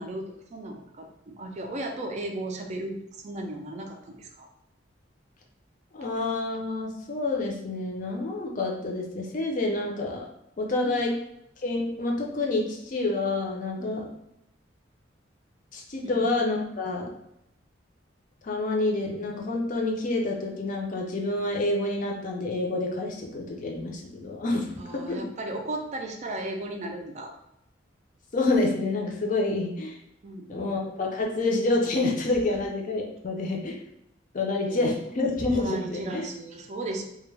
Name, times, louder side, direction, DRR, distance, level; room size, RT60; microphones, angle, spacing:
voice 1, 0.0-4.5 10.8-11.1 13.8-14.1 16.0-16.3 24.8-27.3 30.2-30.8 32.5-32.6 34.7-34.9 35.5-37.0, right 2 dB, 35° right, 3 dB, 0.3 m, -36 dB
voice 2, 6.0-10.2 10.6-11.1 11.6-14.0 15.7-17.1 18.4-24.7 25.1-25.2 28.3-30.0 30.5-33.8 34.3-36.3, left 2 dB, 45° left, 0 dB, 0.5 m, -28 dB
2.2 x 2.1 x 3.2 m, 0.81 s
head